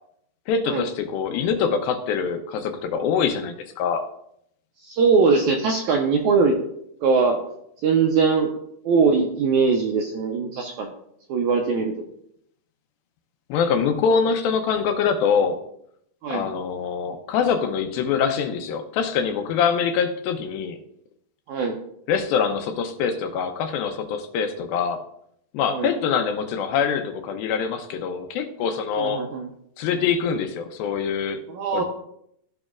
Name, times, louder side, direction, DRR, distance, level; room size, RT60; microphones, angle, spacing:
voice 1, 0.5-4.0 13.5-15.6 16.3-20.8 22.1-25.0 25.5-29.2 29.8-31.4 31.7-31.8, left 6 dB, 80° left, 7 dB, 2.6 m, -24 dB
voice 2, 4.8-6.6 7.0-7.4 7.8-8.5 8.9-10.9 11.3-11.9 16.2-16.4 21.5-21.8 25.7-25.9 29.0-29.5 31.5-31.8, right 5 dB, 80° right, 1 dB, 1.7 m, -21 dB
14.0 x 5.3 x 2.4 m, 0.73 s
omnidirectional pair, 4.2 m